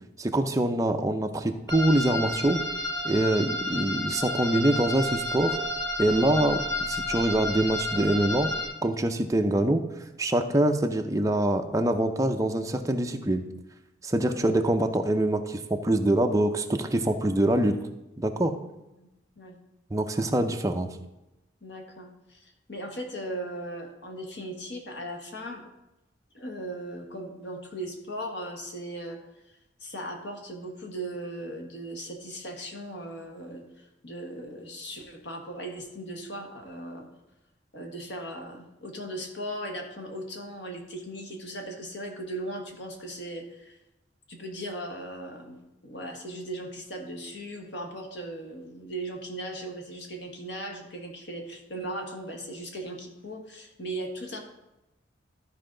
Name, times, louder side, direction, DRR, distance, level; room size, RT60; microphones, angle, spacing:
voice 1, 0.2-2.6 3.0-5.6 6.0-8.5 8.8-9.8 10.2-13.4 14.0-17.8 18.2-18.5 19.9-21.0, right 1 dB, 15° right, 5 dB, 0.5 m, -24 dB
sound 1, 1.7-8.7, left 1 dB, 25° left, 3.0 m, -31 dB
voice 2, 21.6-25.6 26.3-29.2 29.8-33.6 34.0-37.1 37.7-43.8 44.3-54.4, right 1 dB, 60° left, 3 dB, 1.3 m, -38 dB
13.5 x 4.6 x 3.8 m, 0.96 s
head